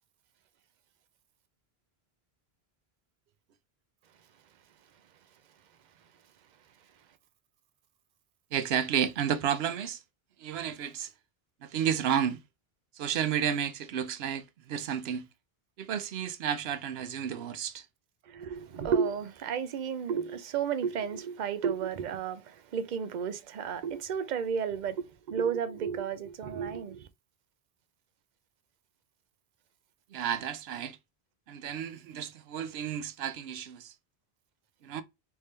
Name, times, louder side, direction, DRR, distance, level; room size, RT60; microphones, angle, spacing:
voice 1, 8.5-10.0 10.4-11.1 11.6-12.4 13.0-15.3 15.8-17.8 30.1-31.0 31.5-33.9 34.8-35.0, right 8 dB, 80° right, 0.8 m, -31 dB
voice 2, 18.3-27.1, right 7 dB, 55° right, 0.6 m, -32 dB
3.4 x 2.7 x 3.2 m
omnidirectional pair, 1.1 m